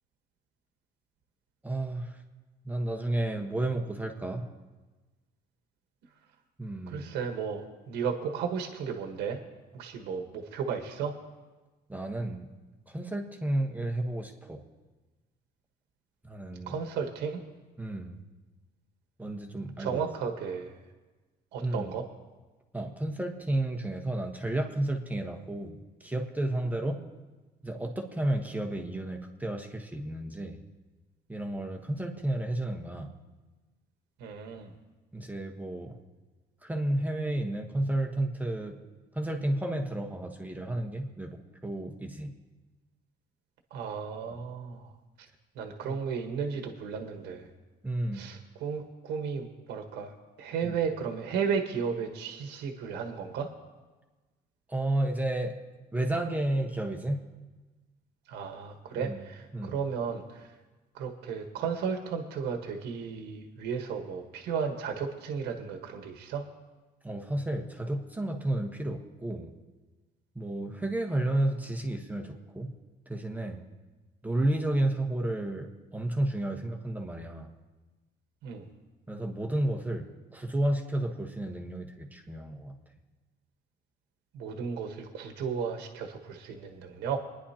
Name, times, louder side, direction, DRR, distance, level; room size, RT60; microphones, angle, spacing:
voice 1, 1.6-2.2 2.6-4.5 6.6-7.1 11.9-12.5 12.9-14.6 16.3-16.8 17.8-18.2 19.2-20.0 21.6-21.9 22.7-27.0 27.6-30.6 31.3-33.1 35.1-36.0 36.6-38.8 39.1-42.3 45.8-46.0 47.8-48.3 50.6-50.7 54.7-55.6 55.9-57.2 59.0-59.2 59.5-59.7 67.0-69.5 70.3-72.7 73.1-73.6 74.2-77.5 79.1-82.8, right 1 dB, 10° right, 3 dB, 1.2 m, -32 dB
voice 2, 6.9-9.4 9.7-11.1 16.7-17.4 19.8-20.8 21.5-22.0 34.2-34.7 43.7-44.9 45.6-47.5 48.1-50.1 50.4-53.5 58.3-60.5 60.9-66.4 78.4-78.7 84.3-87.2, right 6 dB, 85° right, 4 dB, 1.3 m, -34 dB
27.5 x 10.0 x 2.9 m, 1.2 s
cardioid pair, 110°, 17 cm